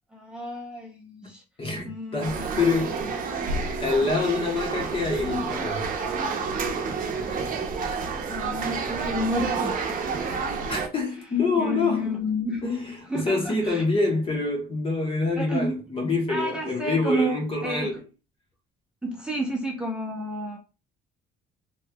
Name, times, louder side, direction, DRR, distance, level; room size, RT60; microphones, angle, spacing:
voice 1, 0.1-1.4 1.8-3.1 8.3-10.2 11.6-12.6 13.1-13.9 15.4-15.8 16.3-17.9 19.0-20.6, equal, 5° right, 0.8 m, -31 dB
voice 2, 1.6-3.0 3.8-5.9 10.7-12.1 12.6-18.0, left 3 dB, 35° left, 1.3 m, -26 dB
sound 1, 2.2-10.9, right 5 dB, 50° right, 0.8 m, -29 dB
3.2 x 2.9 x 2.3 m
cardioid pair, 110°, 17 cm